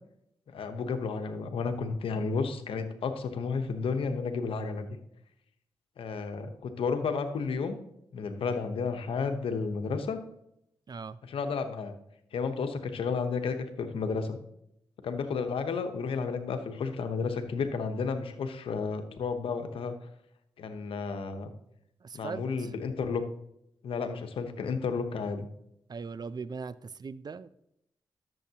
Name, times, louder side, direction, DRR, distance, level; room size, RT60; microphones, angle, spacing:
voice 1, 0.5-4.9 6.0-7.8 8.1-10.2 11.2-11.9 12.3-14.4 15.0-19.9 20.6-21.5 22.1-23.2 23.8-25.5, left 5 dB, 85° left, 7 dB, 1.0 m, -32 dB
voice 2, 10.9-11.2 22.0-22.7 25.9-27.5, right 5 dB, 50° right, 17 dB, 0.5 m, -40 dB
12.0 x 7.2 x 2.9 m, 0.77 s
cardioid pair, 50°, 9 cm